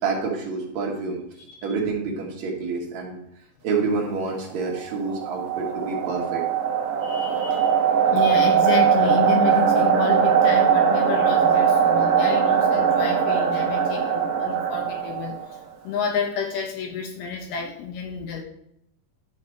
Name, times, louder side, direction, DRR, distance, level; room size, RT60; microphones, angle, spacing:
voice 1, 0.0-1.2 1.6-3.2 3.6-6.5, right 4 dB, 55° right, -1 dB, 2.4 m, -27 dB
sound 1, 4.7-15.6, right 7 dB, 70° right, 2.1 m, -20 dB
voice 2, 7.0-18.4, left 5 dB, 75° left, 3 dB, 2.6 m, -30 dB
11.5 x 4.9 x 4.5 m, 0.77 s
omnidirectional pair, 4.8 m